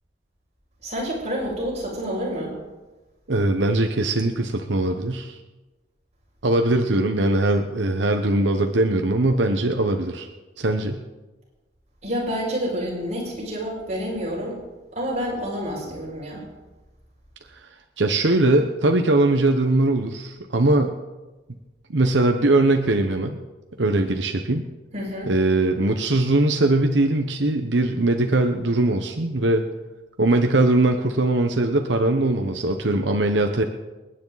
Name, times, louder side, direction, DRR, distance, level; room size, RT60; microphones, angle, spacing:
voice 1, 0.8-2.5 12.0-14.6 14.9-16.4 24.9-25.3, equal, 40° right, -5 dB, 6.2 m, -28 dB
voice 2, 3.3-5.4 6.4-10.3 10.6-11.0 18.0-20.9 21.9-23.4 23.8-24.7 25.3-29.7 30.2-33.6, right 2 dB, 90° right, 5 dB, 1.0 m, -21 dB
28.5 x 9.9 x 4.1 m, 1.2 s
head